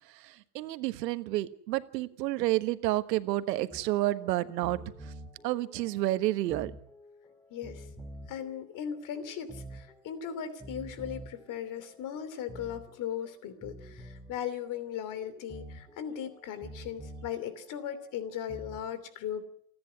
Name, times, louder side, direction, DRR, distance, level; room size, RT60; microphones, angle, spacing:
voice 1, 0.1-5.1 5.4-6.7, right 16 dB, 85° right, 12 dB, 1.5 m, -30 dB
sound 1, 3.7-18.9, right 1 dB, 5° left, 2.9 m, -49 dB
voice 2, 7.5-7.9 8.3-19.4, left 9 dB, 40° left, 13 dB, 3.0 m, -38 dB
29.0 x 10.5 x 9.5 m, 0.65 s
supercardioid pair, 145°, 48 cm